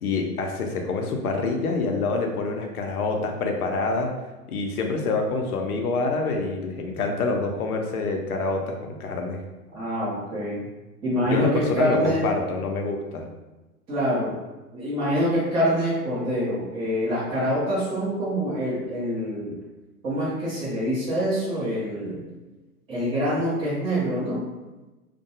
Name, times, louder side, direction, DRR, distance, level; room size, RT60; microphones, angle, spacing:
voice 1, 0.0-4.1 4.5-9.4 11.2-13.3, left 3 dB, 70° left, 3 dB, 0.6 m, -26 dB
voice 2, 9.7-10.6 11.0-12.3 13.9-14.4 14.7-19.6 20.0-22.2 22.9-24.5, equal, 10° right, -12 dB, 0.5 m, -25 dB
2.6 x 2.2 x 2.7 m, 1.1 s
figure-of-eight pair, 110°, 47 cm